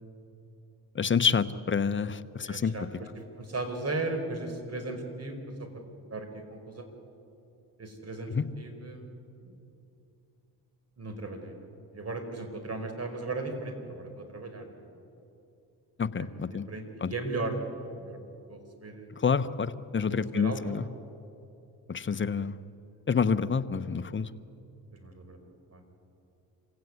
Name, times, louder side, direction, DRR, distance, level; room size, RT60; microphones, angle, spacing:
voice 1, 0.9-2.9 8.3-8.4 16.0-16.7 17.0-17.1 19.2-20.8 21.9-22.5 23.1-24.3, left 6 dB, 25° left, 12 dB, 1.0 m, -28 dB
voice 2, 2.4-2.8 3.2-5.7 6.1-6.9 7.8-9.6 11.0-11.7 11.9-14.9 16.2-16.4 16.7-17.7 17.9-18.2 18.5-19.1 20.1-20.8 24.9-25.8, right 2 dB, 35° right, 6 dB, 5.0 m, -37 dB
26.5 x 16.5 x 9.7 m, 2.7 s
supercardioid pair, 70°, 45 cm